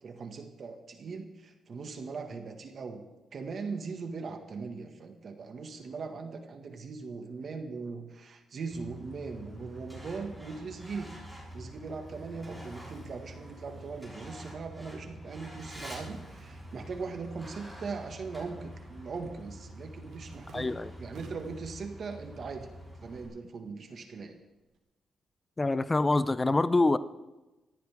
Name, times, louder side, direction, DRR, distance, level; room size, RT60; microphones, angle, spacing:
voice 1, 0.0-3.0 3.3-11.2 11.5-20.7 21.0-22.7 23.0-24.3, right 4 dB, 45° right, 5 dB, 1.7 m, -40 dB
Truck, 8.7-23.3, equal, 5° left, 6.0 m, -46 dB
sound 1, 19.7-21.7 22.2-22.8 23.1-24.8, right 4 dB, 75° right, 2.6 m, -56 dB
voice 2, 20.5-20.9 25.6-27.0, left 2 dB, 20° left, 14 dB, 0.5 m, -25 dB
19.5 x 14.0 x 3.6 m, 1.1 s
cardioid pair, 130°, 0 cm